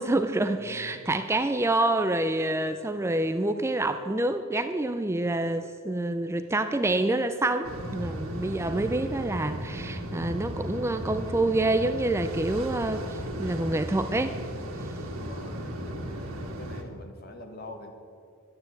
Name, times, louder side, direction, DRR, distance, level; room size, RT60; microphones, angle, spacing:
voice 1, 0.0-14.4, right 2 dB, 15° right, 9 dB, 0.4 m, -27 dB
sound 1, 7.6-16.8, equal, 80° right, 1.8 m, -35 dB
voice 2, 15.2-17.9, left 2 dB, 50° left, 4 dB, 1.6 m, -45 dB
12.0 x 9.7 x 7.9 m, 2.4 s
head